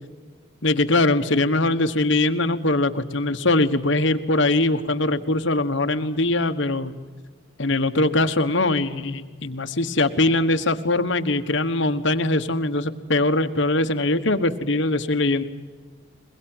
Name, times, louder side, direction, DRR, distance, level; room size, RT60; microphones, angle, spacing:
voice 1, 0.6-6.9 7.6-15.4, left 2 dB, 60° left, 8 dB, 1.3 m, -22 dB
22.5 x 21.5 x 9.1 m, 1.4 s
head